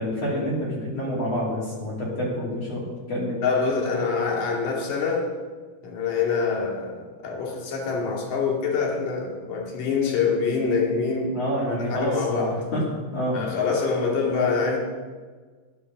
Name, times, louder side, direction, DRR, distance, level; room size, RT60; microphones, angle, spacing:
voice 1, 0.0-3.4 11.3-12.8 13.1-13.5, equal, 45° left, -6 dB, 3.8 m, -28 dB
voice 2, 3.4-5.3 5.8-11.4 11.8-12.5 13.3-14.8, left 5 dB, 70° left, -1 dB, 3.7 m, -25 dB
13.0 x 10.5 x 6.1 m, 1.5 s
omnidirectional pair, 3.9 m